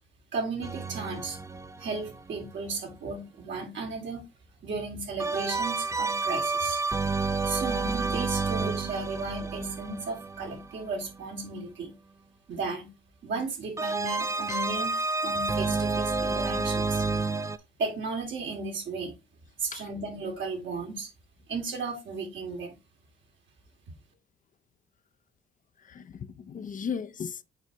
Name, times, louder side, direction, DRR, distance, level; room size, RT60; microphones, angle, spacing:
voice 1, 0.3-1.4 1.8-4.2 4.6-6.8 7.5-11.9 12.5-12.9 13.2-17.0 17.8-19.2 19.6-21.1 21.5-22.7, right 4 dB, 70° right, 2.5 m, -35 dB
sound 1, 0.6-2.6 5.2-11.2 13.8-17.6, right 3 dB, 15° right, 0.4 m, -30 dB
voice 2, 25.8-27.4, left 7 dB, 40° left, 0.6 m, -36 dB
6.8 x 4.7 x 3.0 m
cardioid pair, 90°, 20 cm